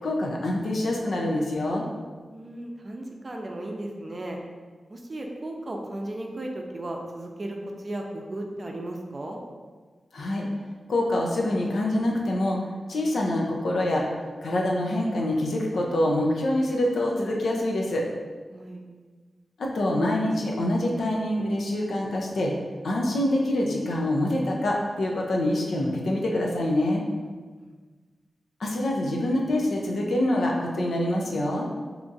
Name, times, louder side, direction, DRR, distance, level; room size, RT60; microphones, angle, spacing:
voice 1, 0.0-1.9 10.1-10.5 10.9-12.6 12.9-14.0 14.4-18.0 19.6-22.5 22.8-27.0 28.6-31.7, left 1 dB, 85° left, -1 dB, 0.5 m, -25 dB
voice 2, 2.3-4.4 4.9-9.4 18.5-18.8 27.2-27.3 27.6-27.7, right 1 dB, 45° right, 1 dB, 0.5 m, -35 dB
2.8 x 2.4 x 3.9 m, 1.4 s
cardioid pair, 60°, 0 cm